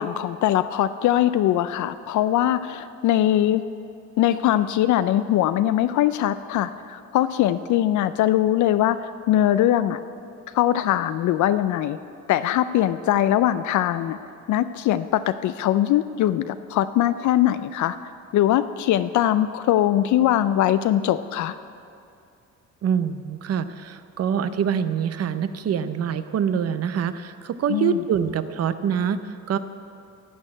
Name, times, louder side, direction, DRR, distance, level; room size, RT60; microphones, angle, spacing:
voice 1, 0.0-3.6 4.2-10.0 10.5-12.0 12.3-14.2 14.5-18.0 18.3-21.5 27.7-28.0, left 12 dB, 75° left, 12 dB, 0.4 m, -21 dB
voice 2, 22.8-29.6, right 7 dB, 55° right, 12 dB, 0.7 m, -25 dB
11.5 x 6.4 x 8.9 m, 2.5 s
cardioid pair, 90°, 30 cm